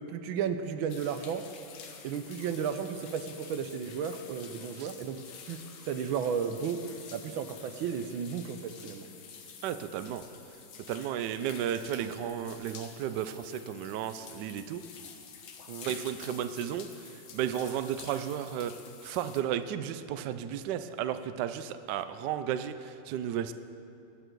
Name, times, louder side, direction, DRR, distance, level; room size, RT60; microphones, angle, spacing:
voice 1, 0.0-1.5 2.0-5.2 5.5-6.8 7.1-9.1 15.7-15.9, right 7 dB, 90° right, 9 dB, 1.5 m, -34 dB
sound 1, 0.9-19.4, left 6 dB, 90° left, 1.9 m, -49 dB
voice 2, 9.6-10.2 10.9-14.8 15.8-18.7 19.0-23.5, right 9 dB, 70° right, 11 dB, 1.1 m, -33 dB
21.0 x 9.0 x 4.6 m, 2.7 s
omnidirectional pair, 2.1 m